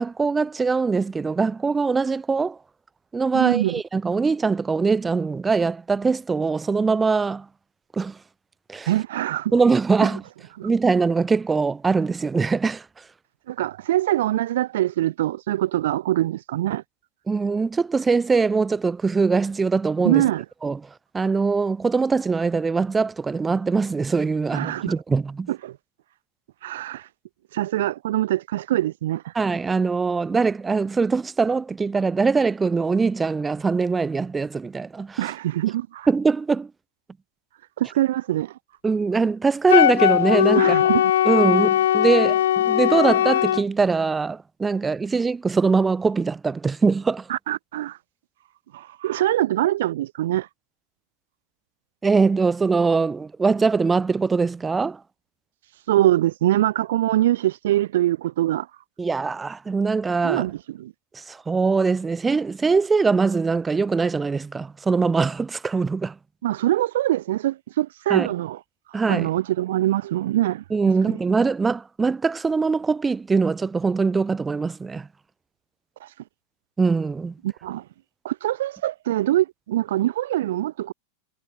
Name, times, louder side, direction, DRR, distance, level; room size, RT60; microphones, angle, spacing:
voice 1, 0.0-2.6 3.1-7.5 7.9-8.2 8.7-8.9 9.5-10.2 10.6-12.8 17.3-20.3 20.6-25.5 29.3-35.3 36.1-36.7 38.8-40.8 41.2-47.3 52.0-55.0 59.0-60.4 61.1-66.1 68.1-68.3 68.9-69.3 70.7-75.1 76.8-77.3, right 4 dB, 15° right, 7.5 m, -22 dB
voice 2, 3.3-3.8 8.9-9.5 10.6-10.7 13.5-16.8 20.0-20.4 24.5-24.9 25.5-25.7 26.6-27.0 27.5-29.2 35.2-36.1 37.8-38.5 40.5-41.1 47.3-48.0 48.7-50.5 55.9-58.7 60.2-60.9 66.4-68.6 69.1-70.6 71.0-71.2 76.0-76.1 77.4-77.8 78.2-80.9, right 14 dB, 55° right, 2.5 m, -23 dB
Wind instrument woodwind instrument, 39.7-43.6, left 11 dB, 60° left, 6.9 m, -19 dB
figure-of-eight pair, 90°, 0 cm